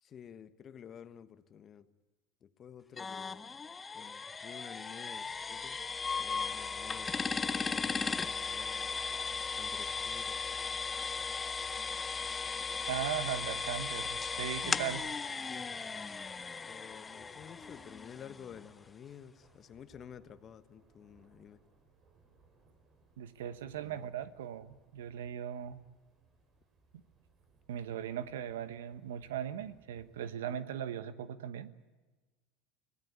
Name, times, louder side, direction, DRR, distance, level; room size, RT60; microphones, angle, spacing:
voice 1, 0.0-1.9 2.4-3.6 3.9-5.8 6.2-9.0 9.5-10.4 15.4-15.7 16.6-21.6 23.8-24.1, left 8 dB, 40° left, 12 dB, 1.3 m, -52 dB
sound 1, 3.0-18.6, left 5 dB, 20° left, 0.7 m, -37 dB
voice 2, 12.9-15.1 23.2-25.8 27.7-31.7, right 9 dB, 85° right, 13 dB, 1.2 m, -38 dB
Thunder / Rain, 14.1-30.4, right 3 dB, 40° right, 5.7 m, -67 dB
25.0 x 17.0 x 9.6 m, 1.3 s
hypercardioid pair, 90°, 0 cm